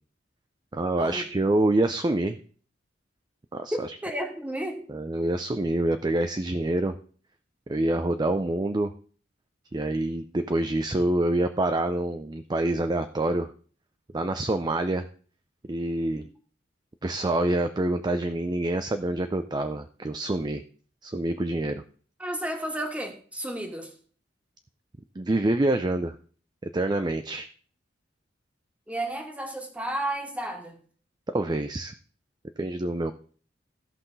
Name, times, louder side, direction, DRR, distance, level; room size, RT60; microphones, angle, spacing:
voice 1, 0.7-2.4 3.5-3.9 4.9-6.9 7.7-8.9 9.7-13.5 14.1-15.1 15.7-16.2 17.0-20.6 21.0-21.8 25.2-26.2 26.6-27.5 31.3-31.9 32.6-33.1, right 1 dB, 25° right, 9 dB, 0.5 m, -26 dB
voice 2, 4.0-4.9 22.2-23.9 28.9-30.8, right 1 dB, 10° right, 3 dB, 1.6 m, -32 dB
15.5 x 5.8 x 4.0 m, 0.43 s
head